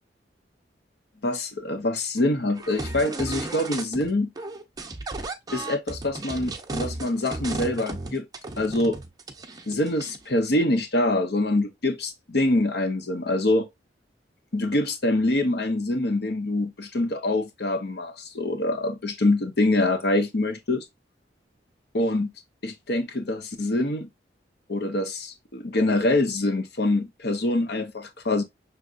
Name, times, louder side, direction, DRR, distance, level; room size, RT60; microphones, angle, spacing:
voice 1, 1.2-4.3 5.5-8.2 8.6-9.0 9.7-13.7 14.5-20.8 21.9-22.3 22.6-24.1 24.7-28.4, left 2 dB, 60° left, 0.9 m, -25 dB
sound 1, 2.6-4.1 4.4-10.3, right 2 dB, 20° right, 0.7 m, -34 dB
6.1 x 3.4 x 2.5 m
head